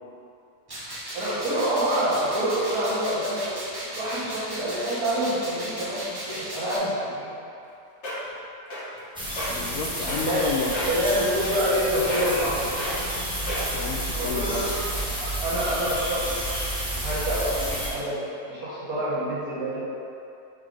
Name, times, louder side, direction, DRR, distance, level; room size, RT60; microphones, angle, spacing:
sound 1, 0.7-6.8, right 1 dB, 25° right, 0.5 m, -36 dB
voice 1, 1.1-3.6 3.9-7.3 10.1-10.4 10.9-13.1 14.1-16.4 17.0-19.8, equal, 65° right, -9 dB, 2.1 m, -27 dB
sound 2, 7.6-7.7 8.0-8.3 8.7-9.0 9.3-9.5 10.1-10.4 10.7-11.0 11.4-11.8 12.1-12.4 12.8-12.9 13.5-13.8 14.5-14.6, left 1 dB, 45° left, 1.7 m, -31 dB
sound 3, 9.2-17.9, right 1 dB, 5° right, 0.9 m, -30 dB
voice 2, 9.5-10.7 13.7-14.7, left 4 dB, 70° left, 0 dB, 0.9 m, -31 dB
5.4 x 3.9 x 4.7 m, 2.7 s
omnidirectional pair, 1.7 m